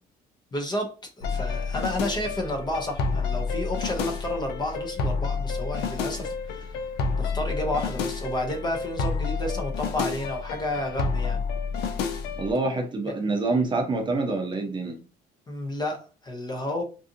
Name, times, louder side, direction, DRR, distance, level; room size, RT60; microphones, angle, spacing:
voice 1, 0.5-6.7 7.2-11.4 15.5-16.8, left 1 dB, 25° left, 3 dB, 0.7 m, -31 dB
sound 1, 1.2-12.5, left 5 dB, 85° left, 0.5 m, -29 dB
voice 2, 12.4-15.0, right 3 dB, 30° right, 3 dB, 0.6 m, -26 dB
2.6 x 2.4 x 2.6 m, 0.34 s
cardioid pair, 110°, 17 cm